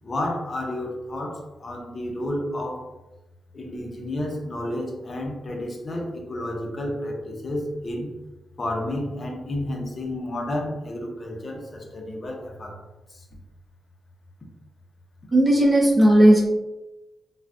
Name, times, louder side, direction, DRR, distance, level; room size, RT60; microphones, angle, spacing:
voice 1, 0.0-2.9 3.5-8.2 8.6-12.8 13.1-13.3, left 1 dB, 40° left, 1 dB, 0.6 m, -31 dB
voice 2, 15.3-16.5, right 1 dB, 25° right, -5 dB, 0.5 m, -15 dB
3.3 x 2.2 x 2.5 m, 1.0 s
cardioid pair, 110°, 0 cm